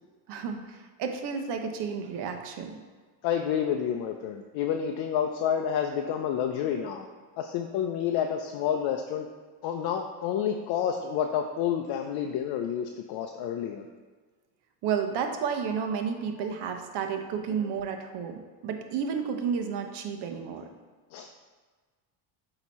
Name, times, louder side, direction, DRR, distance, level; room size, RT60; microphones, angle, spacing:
voice 1, 0.3-2.8 14.8-20.7, right 6 dB, 60° right, 5 dB, 0.9 m, -32 dB
voice 2, 3.2-7.1 7.4-9.3 9.6-13.9 16.4-16.5 21.1-21.4, left 8 dB, 55° left, 4 dB, 0.5 m, -29 dB
7.9 x 3.0 x 4.2 m, 1.4 s
supercardioid pair, 95°, 47 cm